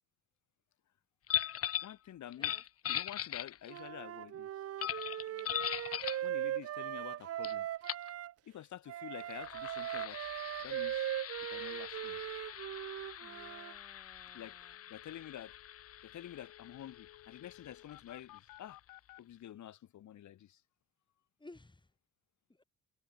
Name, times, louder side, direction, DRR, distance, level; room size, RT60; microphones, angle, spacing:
sound 1, 1.3-1.9 2.3-3.9 4.8-6.3 7.4-7.5 7.8-8.1 9.2-18.4, left 11 dB, 50° left, 0.7 m, -41 dB
voice 1, 1.8-2.5 2.9-4.5 6.2-7.7 8.4-10.2 10.6-11.1 11.5-12.2 14.3-14.6 14.9-15.5 16.0-18.8 19.2-20.6, left 11 dB, 70° left, 3.0 m, -49 dB
Wind instrument woodwind instrument, 3.7-8.3 8.9-13.7, right 12 dB, 50° right, 0.6 m, -39 dB
voice 2, 5.3-5.6 13.2-14.8 21.4-21.9 22.5-22.6, left 2 dB, 15° left, 5.5 m, -58 dB
sound 2, 14.3-14.4 14.6-19.2, left 16 dB, 90° left, 1.4 m, -58 dB
cardioid pair, 90°, 30 cm